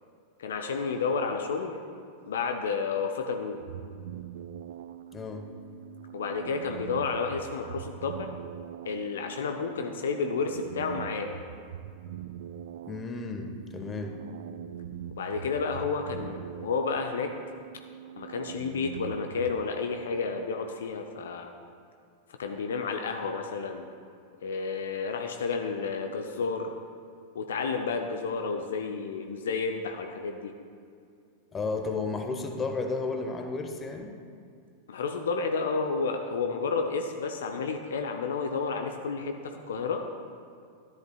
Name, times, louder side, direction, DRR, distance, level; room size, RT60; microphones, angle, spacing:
voice 1, 0.4-1.8 2.3-3.6 6.1-8.3 8.9-11.3 15.2-17.3 18.2-21.5 22.4-23.9 24.4-26.7 27.3-30.5 34.9-40.0, left 5 dB, 65° left, 5 dB, 0.6 m, -31 dB
sound 1, 3.6-19.6, right 9 dB, 55° right, 0.3 m, -43 dB
voice 2, 5.1-5.5 12.8-14.2 31.5-34.1, left 3 dB, 20° left, 4 dB, 1.0 m, -33 dB
13.0 x 10.5 x 2.3 m, 2.4 s
figure-of-eight pair, 90°, 0 cm